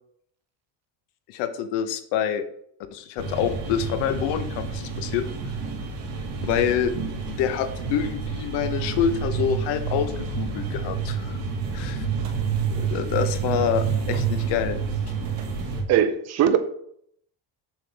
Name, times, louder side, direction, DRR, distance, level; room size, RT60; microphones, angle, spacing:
voice 1, 1.3-2.4 2.9-5.3 6.4-6.9 7.3-11.4 11.7-12.1 12.7-14.8, left 8 dB, 70° left, 11 dB, 0.9 m, -26 dB
sound 1, 3.2-15.8, right 5 dB, 70° right, 1.9 m, -29 dB
voice 2, 15.9-16.6, right 9 dB, 40° right, 10 dB, 0.5 m, -20 dB
7.5 x 6.9 x 3.4 m, 0.67 s
cardioid pair, 170°, 43 cm